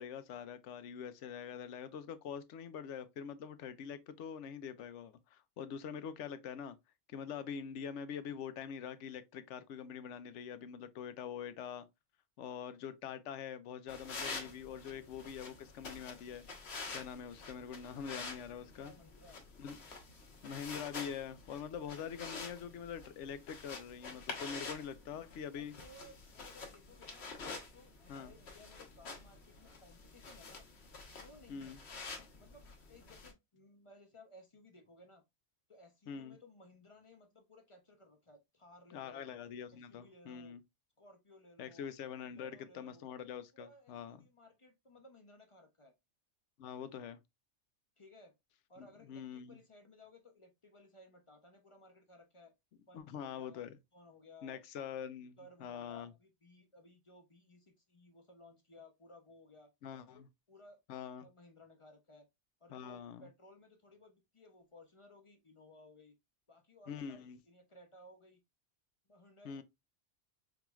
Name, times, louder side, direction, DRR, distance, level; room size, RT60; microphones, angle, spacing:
voice 1, 0.0-6.8 7.1-11.9 12.4-16.4 16.9-18.9 19.6-19.8 20.4-25.8 28.1-28.3 31.5-31.8 36.1-36.4 38.9-40.6 41.6-44.2 46.6-47.2 48.8-49.6 52.9-53.7 54.4-56.1 59.8-60.3 60.9-61.3 62.7-63.3 66.9-67.4 69.4-69.6, left 7 dB, 85° left, 0.9 m, -44 dB
sound 1, 13.9-33.3, left 4 dB, 65° left, 1.2 m, -48 dB
voice 2, 18.5-19.4 25.5-27.4 27.7-30.7 31.2-31.8 32.4-35.2 35.7-39.3 39.7-40.6 41.0-41.9 42.3-43.0 43.6-45.9 48.0-48.3 48.7-52.5 52.9-53.6 53.9-54.6 55.4-59.7 60.1-60.2 60.5-62.3 62.6-66.2 66.5-68.4 69.1-69.6, left 2 dB, 35° left, 0.5 m, -59 dB
4.8 x 3.0 x 2.3 m
omnidirectional pair, 1.2 m